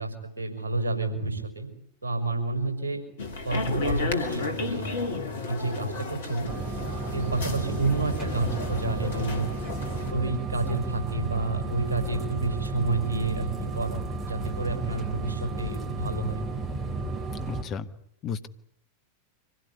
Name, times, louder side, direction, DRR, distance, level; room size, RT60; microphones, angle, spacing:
voice 1, 0.0-1.7 2.0-3.0 3.4-5.0 5.5-6.5 7.1-9.5 10.1-16.4, right 2 dB, 90° left, 5 dB, 5.7 m, -29 dB
sound 1, 3.2-10.1, left 3 dB, 60° left, 2.8 m, -33 dB
sound 2, 6.5-17.6, right 3 dB, 20° right, 3.4 m, -33 dB
voice 2, 17.3-17.9 18.2-18.5, left 6 dB, 30° left, 10 dB, 1.2 m, -34 dB
25.5 x 16.5 x 9.8 m, 0.72 s
figure-of-eight pair, 90°, 0 cm